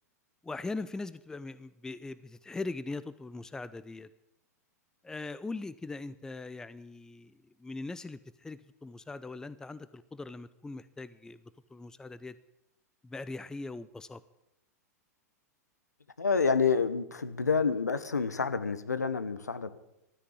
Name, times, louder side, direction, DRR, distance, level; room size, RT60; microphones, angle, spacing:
voice 1, 0.4-4.1 5.0-11.4 11.7-12.4 13.0-14.2, left 3 dB, 5° left, 16 dB, 0.5 m, -40 dB
voice 2, 16.2-19.7, left 5 dB, 80° left, 12 dB, 1.1 m, -28 dB
13.0 x 9.8 x 8.5 m, 0.86 s
figure-of-eight pair, 95°, 9 cm